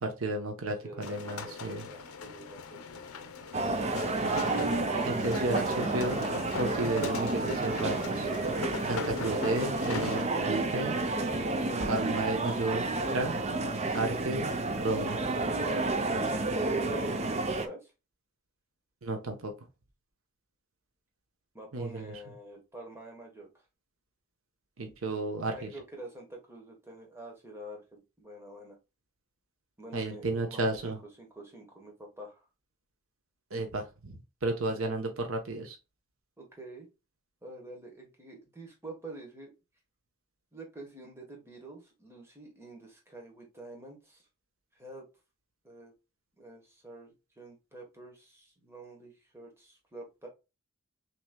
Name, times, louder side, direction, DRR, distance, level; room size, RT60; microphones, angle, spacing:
voice 1, 0.0-1.8 5.0-6.2 6.6-8.3 8.8-11.0 11.9-12.9 13.1-13.4 13.9-14.5 14.8-15.2 19.0-19.5 21.7-22.1 24.8-25.7 29.9-31.0 33.5-35.8, right 2 dB, 70° right, 4 dB, 0.9 m, -33 dB
voice 2, 0.8-2.8 3.1-3.3 17.5-17.9 21.5-23.6 25.5-28.8 29.8-30.9 31.2-32.4 36.4-36.9 37.4-39.5 40.5-44.3 44.7-45.1 45.6-45.9 46.4-50.3, right 1 dB, 10° right, 0 dB, 1.2 m, -47 dB
sound 1, 1.0-10.2, left 4 dB, 85° left, 0.6 m, -40 dB
sound 2, 3.5-17.7, right 2 dB, 30° right, 0.6 m, -30 dB
6.1 x 3.1 x 2.2 m, 0.27 s
head